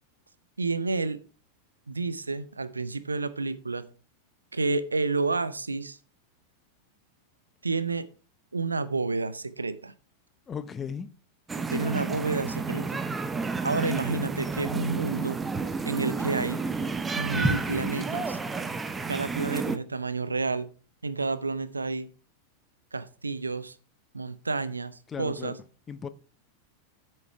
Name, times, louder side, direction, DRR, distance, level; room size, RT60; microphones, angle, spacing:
voice 1, 0.6-1.2 1.9-3.9 4.5-6.0 7.6-8.1 8.5-9.9 11.7-13.0 13.6-15.4 15.8-16.6 17.2-18.4 19.1-20.7 21.0-22.1 22.9-23.8 24.1-25.6, right 3 dB, 80° right, 0.6 m, -30 dB
voice 2, 10.5-11.1 25.1-25.6 25.9-26.1, left 7 dB, 20° left, 0.7 m, -36 dB
sound 1, 11.5-19.8, right 4 dB, 15° right, 0.8 m, -30 dB
9.1 x 6.4 x 4.6 m
figure-of-eight pair, 90°, 0 cm